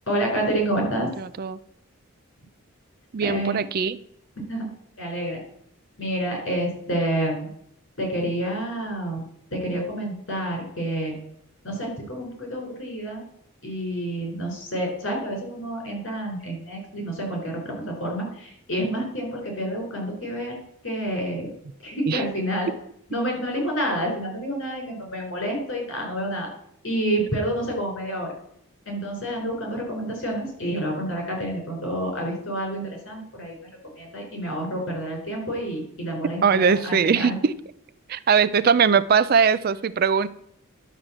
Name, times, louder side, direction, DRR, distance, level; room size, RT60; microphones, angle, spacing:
voice 1, 0.1-1.1 3.2-3.6 4.5-5.4 6.0-7.5 8.0-9.2 9.5-11.1 11.6-13.2 13.6-20.6 20.8-21.5 21.8-22.7 23.1-26.5 26.8-28.3 28.9-33.6 34.0-37.4, right 1 dB, 60° left, 4.5 m, -28 dB
voice 2, 1.2-1.6 3.1-4.0 22.1-22.2 36.4-37.5 38.1-40.3, right 6 dB, 45° right, 0.4 m, -20 dB
11.0 x 5.0 x 7.4 m
head